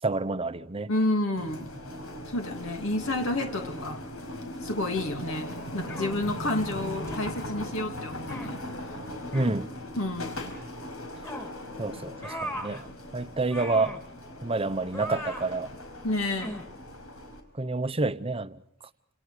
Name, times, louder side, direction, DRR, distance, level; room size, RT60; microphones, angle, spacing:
voice 1, 0.0-0.9 9.3-9.7 11.8-12.9 13.1-14.0 14.4-15.7 17.5-18.6, right 3 dB, 25° right, 12 dB, 0.9 m, -28 dB
voice 2, 0.9-1.7 2.3-4.0 4.6-8.6 10.0-10.6 16.0-16.5, left 2 dB, 70° left, 4 dB, 2.5 m, -30 dB
sound 1, 1.4-17.4, left 1 dB, 85° left, 5.2 m, -39 dB
sound 2, 5.9-6.3 7.1-7.3 8.3-8.6 9.3-9.6 11.2-11.5 12.2-12.8 13.5-14.0 14.9-15.5 16.4-16.7, equal, 15° left, 2.3 m, -38 dB
29.0 x 28.0 x 5.0 m, 0.71 s
head